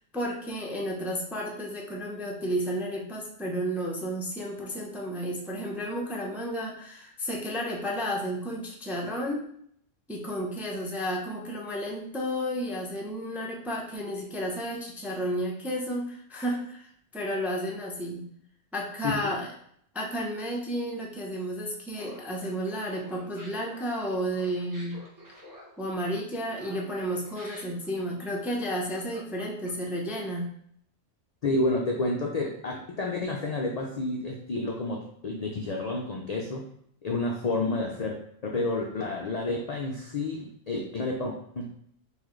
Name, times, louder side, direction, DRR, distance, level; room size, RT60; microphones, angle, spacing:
voice 1, 0.1-9.4 10.1-18.2 18.7-19.5 19.9-25.0 25.8-30.5, equal, ahead, -2 dB, 0.3 m, -32 dB
Laughter, 21.9-30.0, equal, 15° right, 0.8 m, -49 dB
voice 2, 31.4-36.6 37.0-38.2 38.5-41.7, left 2 dB, 70° left, 0 dB, 0.3 m, -30 dB
3.9 x 3.1 x 3.1 m, 0.67 s
omnidirectional pair, 1.3 m